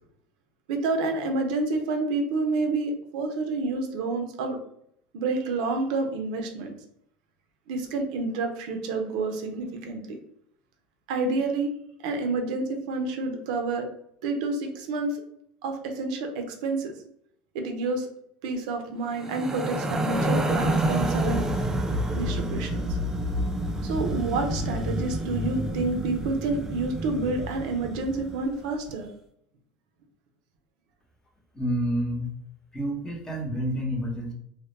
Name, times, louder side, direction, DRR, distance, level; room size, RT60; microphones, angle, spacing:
voice 1, 0.7-4.6 5.1-6.7 7.7-10.2 11.1-11.7 12.0-13.9 14.2-15.2 15.6-16.9 17.5-18.1 18.4-21.5 22.1-22.8 23.8-29.1, right 3 dB, 80° right, 4 dB, 0.5 m, -29 dB
sound 1, 19.2-28.5, right 1 dB, 10° right, 0.3 m, -28 dB
voice 2, 31.5-32.3 32.7-34.3, equal, 15° left, -1 dB, 0.8 m, -28 dB
2.1 x 2.1 x 3.0 m, 0.71 s
supercardioid pair, 105°, 4 cm